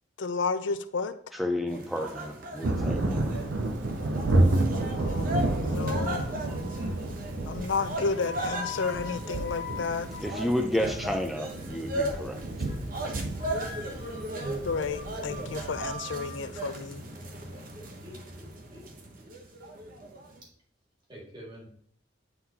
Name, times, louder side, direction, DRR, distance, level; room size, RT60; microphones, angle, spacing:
voice 1, 0.2-1.1 4.9-5.3 5.6-6.3 7.5-10.1 14.7-17.0, left 4 dB, 70° left, 11 dB, 0.5 m, -31 dB
voice 2, 1.3-3.4 10.2-12.4, left 1 dB, ahead, 5 dB, 0.5 m, -31 dB
sound 1, 1.7-20.4, right 1 dB, 45° right, 0.9 m, -38 dB
Thunder, 2.6-15.9, right 2 dB, 70° right, 0.6 m, -30 dB
sound 2, 5.5-6.1 6.5-7.0 7.7-11.0 11.3-11.7 12.1-12.4 12.7-12.8 13.0-13.1 13.4-16.4, left 5 dB, 50° left, 1.3 m, -43 dB
voice 3, 17.7-18.8 19.2-19.3 21.1-21.7, right 1 dB, 25° right, -4 dB, 2.0 m, -45 dB
9.1 x 3.9 x 2.8 m, 0.63 s
head